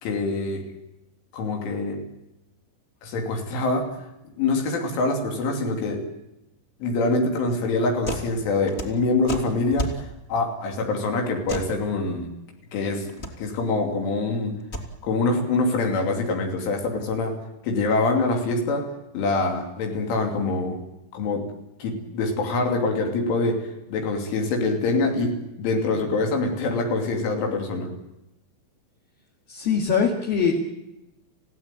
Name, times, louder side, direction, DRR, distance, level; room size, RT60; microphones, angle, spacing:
voice 1, 0.0-0.7 1.3-2.0 3.0-4.0 4.4-6.1 6.8-12.3 12.7-14.6 15.0-17.4 17.6-20.8 21.1-21.5 21.8-27.9, left 3 dB, 80° left, 3 dB, 5.3 m, -25 dB
sound 1, 8.0-8.3 8.6-10.0 11.5-11.7 13.0-13.3 14.5-14.9, equal, 20° left, 3.1 m, -31 dB
voice 2, 29.5-30.6, left 6 dB, 55° left, 0 dB, 3.8 m, -22 dB
30.0 x 16.5 x 9.1 m, 0.91 s
omnidirectional pair, 5.5 m